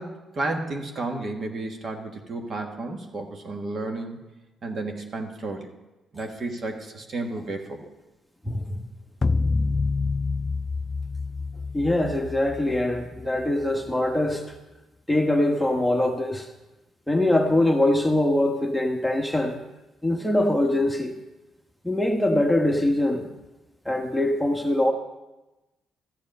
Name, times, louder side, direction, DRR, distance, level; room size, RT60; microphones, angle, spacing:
voice 1, 0.0-4.2 4.6-5.7 6.1-7.9, right 2 dB, 50° right, 3 dB, 1.5 m, -32 dB
voice 2, 8.4-8.8 11.7-14.4 15.1-16.5 17.1-19.6 20.0-21.1 21.8-23.3 23.8-24.9, left 1 dB, 5° left, 2 dB, 1.2 m, -23 dB
sound 1, 9.2-13.7, left 3 dB, 30° left, 0.3 m, -27 dB
13.5 x 7.2 x 5.3 m, 1.0 s
cardioid pair, 90°, 0 cm